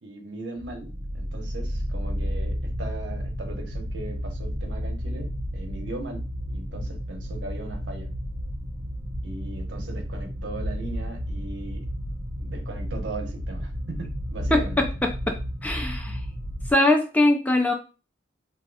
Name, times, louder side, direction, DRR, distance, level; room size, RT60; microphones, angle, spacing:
voice 1, 0.0-6.2 6.5-8.1 9.2-11.9 12.4-14.8, right 2 dB, 70° right, 2 dB, 1.0 m, -38 dB
sound 1, 0.6-16.7, equal, 30° right, 0.6 m, -32 dB
voice 2, 14.5-15.4 15.6-16.2 16.7-17.7, left 1 dB, 10° left, 2 dB, 0.3 m, -22 dB
2.7 x 2.4 x 3.9 m, 0.32 s
head